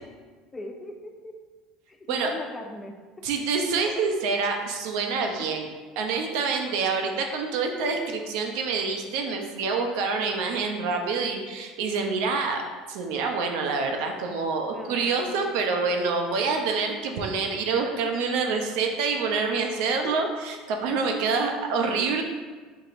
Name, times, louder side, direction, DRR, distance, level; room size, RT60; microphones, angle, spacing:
voice 1, 0.5-1.3 1.9-2.9 14.7-15.7, left 1 dB, 15° left, 3 dB, 0.3 m, -40 dB
voice 2, 3.2-5.7 6.0-12.6 12.9-22.2, right 4 dB, 75° right, 3 dB, 0.5 m, -27 dB
4.6 x 2.8 x 2.5 m, 1.4 s
cardioid pair, 140°, 0 cm